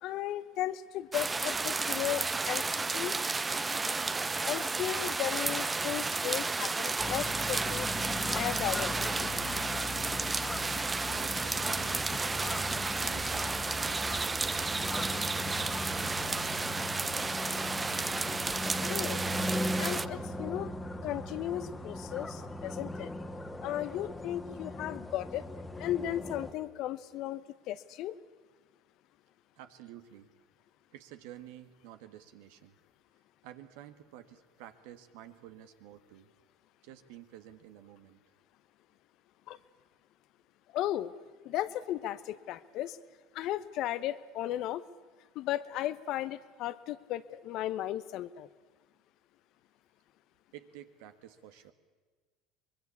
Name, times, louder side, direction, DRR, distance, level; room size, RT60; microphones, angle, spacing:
voice 1, 0.0-2.7 2.9-3.2 3.8-3.9 4.4-7.9 8.3-9.3 18.8-19.2 19.8-20.7 21.0-23.1 23.6-25.5 25.8-28.2 39.5-39.6 40.7-41.1 41.4-43.0 43.3-44.8 45.3-48.5, left 13 dB, 60° left, 15 dB, 0.9 m, -35 dB
sound 1, 1.1-20.1, right 3 dB, 20° right, 0.9 m, -32 dB
sound 2, 7.0-26.5, left 1 dB, 15° left, 1.8 m, -38 dB
voice 2, 11.1-12.7 13.1-16.0 29.5-30.3 30.9-32.8 33.4-36.3 36.8-38.2 50.5-51.7, right 12 dB, 75° right, 9 dB, 1.6 m, -51 dB
24.5 x 21.5 x 8.4 m, 1.4 s
hypercardioid pair, 80°, 0 cm